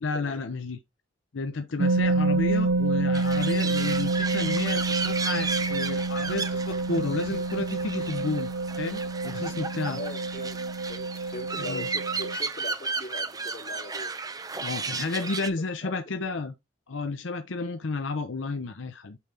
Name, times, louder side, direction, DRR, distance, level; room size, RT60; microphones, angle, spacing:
voice 1, 0.0-0.8 1.3-8.5 8.8-10.0 11.6-11.9 14.6-16.5 16.9-19.2, left 3 dB, 85° left, 0.7 m, -32 dB
sound 1, 1.8-12.4, right 3 dB, 65° right, 0.5 m, -28 dB
sound 2, 1.9-14.8, equal, 20° left, 2.3 m, -53 dB
sound 3, 3.1-15.5, right 4 dB, 20° right, 0.6 m, -34 dB
voice 2, 9.9-14.1 15.2-15.9 16.2-16.3, left 2 dB, 45° left, 2.7 m, -41 dB
8.4 x 3.9 x 3.5 m
head